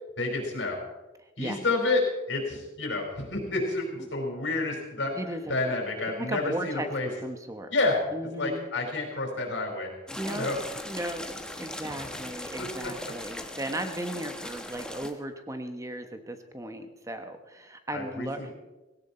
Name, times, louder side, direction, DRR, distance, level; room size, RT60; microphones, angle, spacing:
voice 1, 0.2-0.8 1.4-5.1 5.5-7.1 7.7-8.0 8.4-9.9 10.3-10.6 12.6-12.9 17.9-18.5, left 2 dB, 85° left, 1 dB, 4.8 m, -29 dB
voice 2, 5.2-5.5 6.2-6.9 7.2-7.7 8.1-8.7 10.2-10.5 10.8-18.5, right 1 dB, 20° right, 7 dB, 1.2 m, -36 dB
sound 1, 10.1-15.1, left 1 dB, 5° left, 1.2 m, -39 dB
17.5 x 17.0 x 4.3 m, 1.1 s
head